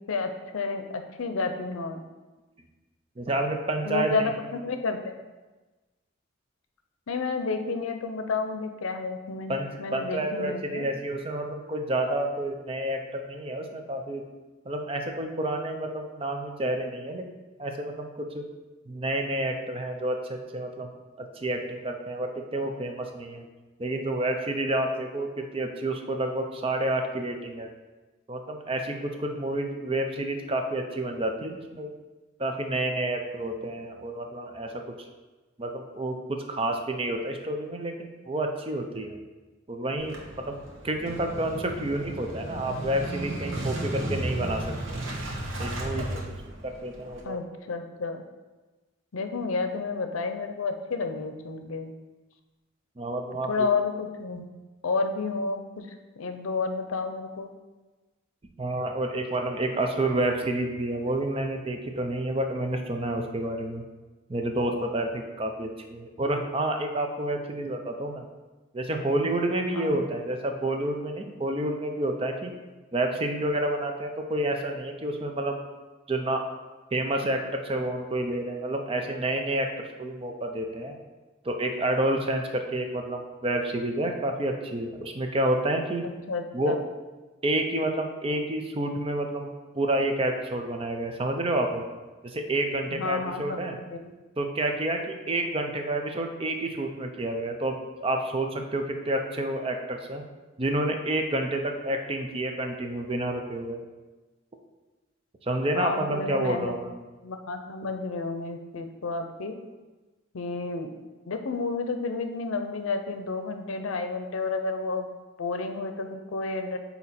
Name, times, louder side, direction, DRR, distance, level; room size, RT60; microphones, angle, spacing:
voice 1, 0.1-2.0 3.8-5.1 7.1-10.9 47.2-48.2 49.1-51.9 53.5-54.5 54.8-55.9 56.2-57.5 69.7-70.0 86.3-86.8 92.9-93.6 93.9-94.1 105.7-106.7 107.2-109.5 110.3-110.9 111.3-115.1 115.4-116.8, left 4 dB, 90° left, 7 dB, 0.6 m, -31 dB
voice 2, 3.2-4.3 9.5-14.2 14.7-17.3 17.6-18.4 18.9-20.9 21.4-23.4 23.8-27.7 28.3-31.9 32.4-34.7 35.0-35.1 35.6-39.2 39.7-40.6 40.8-44.8 45.6-46.2 46.6-47.4 53.0-53.7 58.6-63.8 64.3-68.3 68.7-72.5 72.9-75.6 76.1-76.5 76.9-81.0 81.4-86.0 86.5-86.8 87.4-89.5 89.8-91.8 92.2-93.8 94.4-100.2 100.6-103.8 105.4-106.9, right 1 dB, 25° right, 4 dB, 0.5 m, -29 dB
Motorcycle / Engine starting, 40.0-47.2, right 1 dB, 70° right, 1.0 m, -34 dB
8.1 x 2.8 x 4.2 m, 1.2 s
head